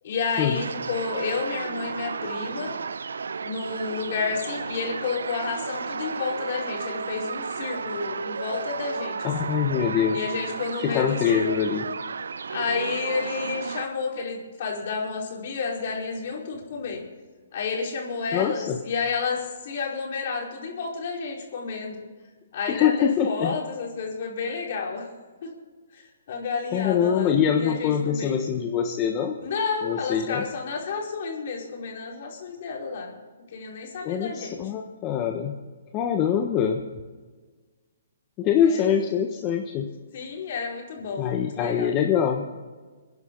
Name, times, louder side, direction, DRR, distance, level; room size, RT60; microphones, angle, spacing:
voice 1, 0.0-2.7 3.4-9.5 10.1-11.5 12.5-17.0 17.5-22.0 22.5-25.1 25.4-25.5 25.9-28.4 29.4-33.1 33.5-34.6 38.6-39.0 40.1-41.9, left 5 dB, 55° left, -1 dB, 4.8 m, -31 dB
sound 1, 0.5-13.9, right 5 dB, 75° right, 0.5 m, -33 dB
voice 2, 9.2-10.3 10.8-11.8 18.3-18.9 22.7-23.5 26.7-29.4 29.8-30.4 34.0-35.6 35.9-36.8 38.4-39.9 41.2-42.5, left 8 dB, 30° left, 3 dB, 1.3 m, -24 dB
27.5 x 10.5 x 4.0 m, 1.4 s
hypercardioid pair, 135°, 0 cm